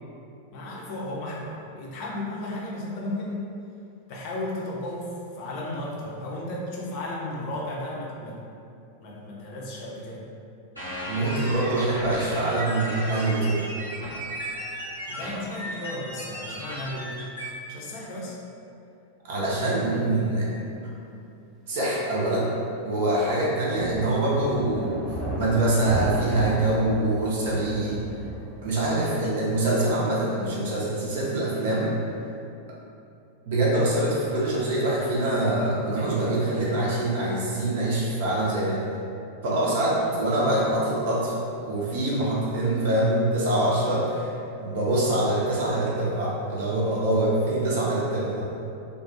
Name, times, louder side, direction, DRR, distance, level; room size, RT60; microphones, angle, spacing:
voice 1, 0.5-3.5 4.1-8.4 9.0-10.3 15.1-17.2 17.7-18.4, left 1 dB, 45° left, -3 dB, 0.5 m, -34 dB
sound 1, 10.8-17.5, equal, 90° right, 0.7 m, -35 dB
voice 2, 11.1-13.6 19.2-20.5 21.7-22.5 22.8-25.0 25.4-28.0 28.6-32.1 33.5-38.8 39.4-48.4, right 1 dB, 55° right, -6 dB, 0.5 m, -24 dB
sound 2, 23.8-29.0, equal, 5° right, 0.9 m, -34 dB
2.3 x 2.1 x 2.6 m, 2.6 s
figure-of-eight pair, 90°, 0 cm